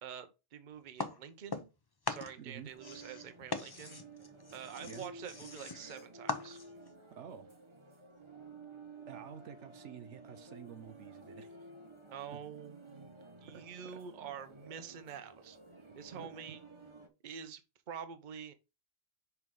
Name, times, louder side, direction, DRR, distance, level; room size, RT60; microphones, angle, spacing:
voice 1, 0.0-1.7 2.1-4.0 4.5-6.6 12.1-13.1 13.4-15.6 15.9-16.6 17.2-18.5, right 8 dB, 45° right, 0.9 m, -47 dB
sound 1, 1.0-6.9, left 3 dB, 25° left, 0.6 m, -41 dB
voice 2, 2.4-2.7 4.9-5.1 7.1-7.5 9.1-11.5 12.3-12.4 13.5-13.6 16.1-16.6, right 8 dB, 80° right, 1.1 m, -49 dB
sound 2, 2.7-17.1, right 2 dB, 25° right, 1.1 m, -53 dB
5.9 x 4.6 x 3.6 m
omnidirectional pair, 1.2 m